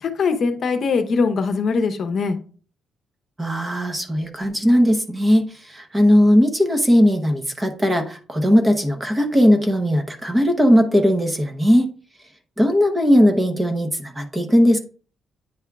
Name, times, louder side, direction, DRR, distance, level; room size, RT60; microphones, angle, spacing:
voice 1, 0.0-2.4, left 4 dB, 45° left, 7 dB, 0.8 m, -21 dB
voice 2, 3.4-11.9 12.6-14.8, equal, 15° right, 6 dB, 0.8 m, -18 dB
9.2 x 3.5 x 3.5 m, 0.41 s
cardioid pair, 155°, 0 cm